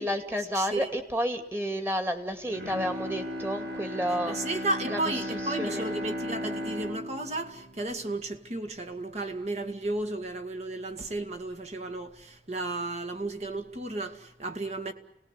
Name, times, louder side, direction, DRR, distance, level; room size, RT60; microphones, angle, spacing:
voice 1, 0.0-4.4 4.9-5.9, equal, 15° right, 2.4 m, -31 dB
voice 2, 0.6-0.9 4.3-14.9, right 2 dB, 40° right, 2.0 m, -33 dB
Bowed string instrument, 2.5-8.7 9.1-9.2, equal, 70° right, 3.1 m, -36 dB
30.0 x 19.0 x 8.2 m
head